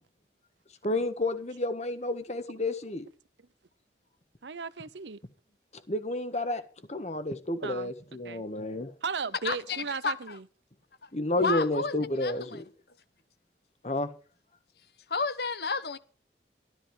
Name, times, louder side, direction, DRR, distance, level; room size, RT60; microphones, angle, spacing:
voice 1, 0.8-3.0 5.9-6.6 6.9-8.9 11.1-12.6 13.8-14.1, left 2 dB, 40° left, 1.5 m, -30 dB
voice 2, 4.4-5.2 7.6-7.9 8.2-8.4 9.0-10.5, right 5 dB, 80° right, 0.8 m, -36 dB
voice 3, 9.4-10.3 11.0-11.1 11.4-11.9 12.2-12.6 15.1-16.0, left 4 dB, 60° left, 1.0 m, -31 dB
12.5 x 12.5 x 4.9 m
head